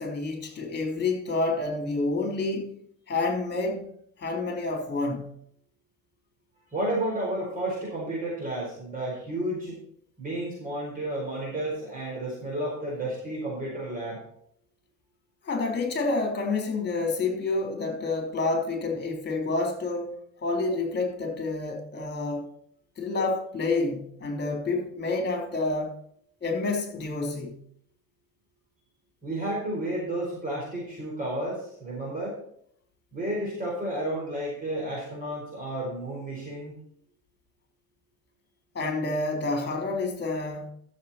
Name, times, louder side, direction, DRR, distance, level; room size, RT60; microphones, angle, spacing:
voice 1, 0.0-2.7 3.1-3.9 4.2-5.3 15.4-22.5 23.0-26.0 26.4-27.6 38.8-40.7, left 3 dB, 30° left, 3.5 m, -28 dB
voice 2, 6.7-9.8 10.2-14.2 29.2-32.4 33.1-36.8, right 1 dB, 25° right, 4.6 m, -32 dB
13.5 x 7.3 x 4.3 m
cardioid pair, 125°, 33 cm